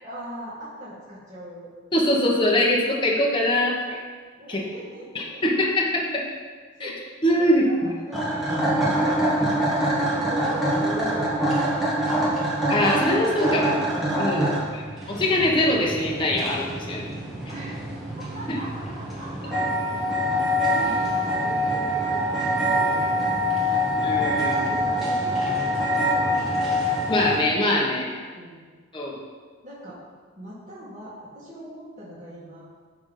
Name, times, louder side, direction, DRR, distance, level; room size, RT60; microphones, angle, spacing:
voice 1, 0.0-1.7 4.3-5.4 6.8-7.0 7.4-12.0 17.5-17.8 18.3-19.5 20.3-23.4 24.5-26.5 28.3-28.6 29.6-30.0 30.4-32.7, equal, 35° right, -9 dB, 1.8 m, -40 dB
voice 2, 1.9-4.0 4.5-4.6 5.1-6.2 6.8-6.9 7.2-7.9 12.7-13.8 14.1-14.5 15.1-17.1 18.5-18.6 24.0-24.6 27.1-28.2 28.9-29.2, left 1 dB, 20° left, -2 dB, 1.0 m, -22 dB
sound 1, 8.1-27.4, equal, ahead, 1.5 m, -25 dB
10.5 x 3.5 x 5.5 m, 1.5 s
head